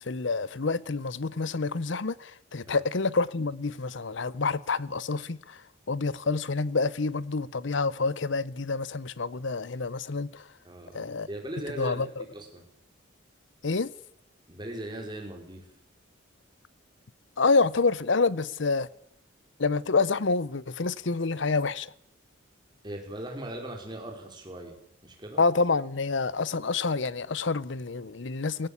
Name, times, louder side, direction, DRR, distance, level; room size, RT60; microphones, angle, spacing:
voice 1, 0.0-5.6 5.9-10.5 10.9-11.3 11.8-12.2 13.6-13.9 17.4-18.9 19.6-21.9 25.4-28.7, left 4 dB, 65° left, 0.7 m, -27 dB
voice 2, 10.6-12.1 12.3-12.6 14.5-15.6 22.8-24.8 25.0-25.4, right 1 dB, 20° right, 4.6 m, -39 dB
18.0 x 17.0 x 8.6 m
head